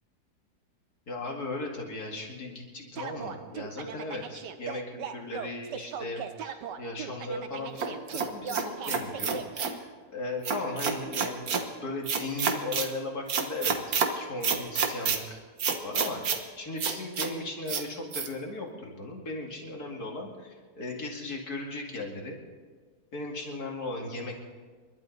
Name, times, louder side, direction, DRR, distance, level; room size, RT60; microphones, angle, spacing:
voice 1, 1.1-9.4 9.6-11.6 11.8-15.4 15.8-22.4 23.1-24.4, left 2 dB, 65° left, 0 dB, 2.7 m, -37 dB
sound 1, 3.0-9.7, right 7 dB, 90° right, 1.5 m, -39 dB
sound 2, 7.8-9.8 10.4-11.6 12.1-12.9 13.3-14.1 14.4-15.2 15.6-16.4 16.8-17.3 17.7-17.8 18.1-18.3, right 6 dB, 65° right, 1.6 m, -28 dB
28.0 x 12.0 x 4.1 m, 1.4 s
omnidirectional pair, 1.8 m